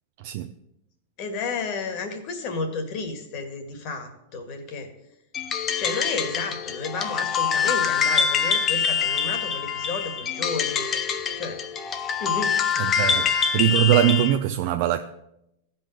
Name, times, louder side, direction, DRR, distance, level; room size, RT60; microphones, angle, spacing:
voice 1, 1.2-4.9 5.8-10.9 11.4-11.6 12.2-12.6 13.0-13.2, left 4 dB, 35° left, 1.8 m, -32 dB
sound 1, 5.3-14.4, left 7 dB, 20° left, 0.6 m, -25 dB
voice 2, 12.8-13.3 13.5-15.0, right 12 dB, 45° right, 0.5 m, -21 dB
14.5 x 5.4 x 7.7 m
supercardioid pair, 165°, 0 cm